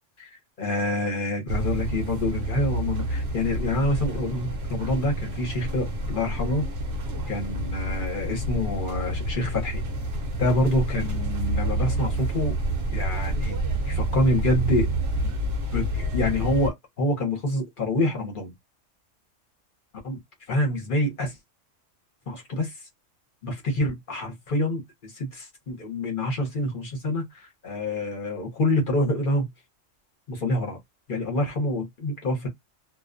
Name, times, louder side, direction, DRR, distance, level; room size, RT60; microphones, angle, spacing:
voice 1, 0.6-6.7 7.3-9.8 10.4-12.5 12.9-13.6 13.9-14.9 15.2-15.3 15.7-18.5 20.0-20.2 20.5-21.3 22.3-22.7 23.4-29.5 30.3-30.8 31.1-32.5, left 1 dB, 45° left, 0.9 m, -27 dB
sound 1, 1.5-16.7, right 1 dB, 60° right, 0.9 m, -28 dB
2.4 x 2.2 x 2.5 m
omnidirectional pair, 1.3 m